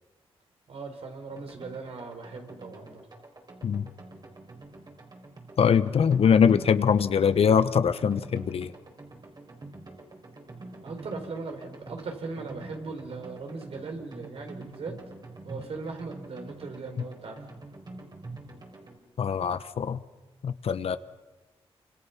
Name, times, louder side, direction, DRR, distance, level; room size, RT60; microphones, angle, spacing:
voice 1, 0.7-3.1 10.8-15.0 15.4-17.4, right 4 dB, 70° right, 4 dB, 4.4 m, -39 dB
sound 1, 1.3-19.0, right 2 dB, 40° right, 4.2 m, -46 dB
voice 2, 5.6-8.7 19.2-20.0 20.4-21.0, left 7 dB, 70° left, 13 dB, 1.1 m, -22 dB
28.5 x 25.5 x 5.9 m, 1.2 s
cardioid pair, 75°, 10 cm